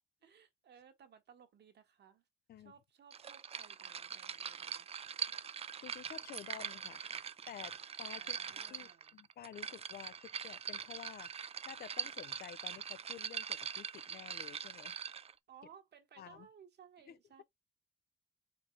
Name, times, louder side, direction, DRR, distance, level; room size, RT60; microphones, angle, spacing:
voice 1, 0.0-2.2 2.6-4.9 8.2-9.2 15.5-17.4, right 7 dB, 55° right, 1.3 m, -60 dB
sound 1, 3.1-15.3, right 7 dB, 30° right, 0.4 m, -43 dB
voice 2, 5.8-8.4 8.7-15.0 16.2-16.5 17.1-17.4, left 10 dB, 55° left, 0.4 m, -51 dB
4.5 x 2.3 x 4.5 m
cardioid pair, 90°, 20 cm